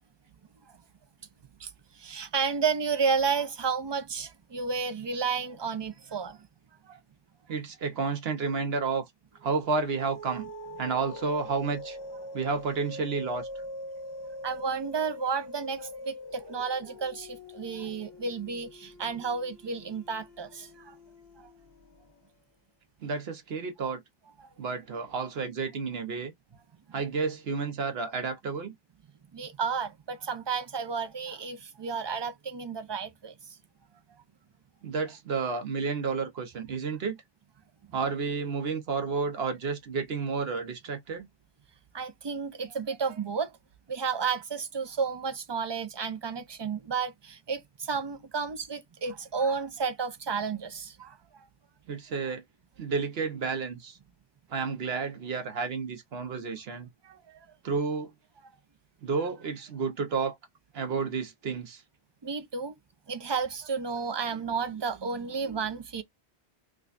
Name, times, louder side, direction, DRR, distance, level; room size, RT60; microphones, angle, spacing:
voice 1, 1.9-6.5 6.8-7.0 14.4-20.9 21.4-21.5 24.4-24.5 29.3-33.4 41.9-43.5 43.9-51.2 57.0-57.4 62.2-62.7 63.1-66.0, right 5 dB, 40° right, 0.4 m, -32 dB
voice 2, 7.5-9.1 9.4-10.5 10.8-12.0 12.3-13.5 23.0-24.0 24.6-26.3 26.9-28.7 34.8-37.2 37.9-41.3 51.9-52.4 52.8-54.0 54.5-56.9 57.6-58.1 59.0-60.4 60.7-61.8, right 4 dB, 70° right, 1.1 m, -31 dB
sound 1, 9.4-22.2, left 1 dB, 70° left, 1.1 m, -44 dB
4.8 x 2.3 x 2.4 m
omnidirectional pair, 1.1 m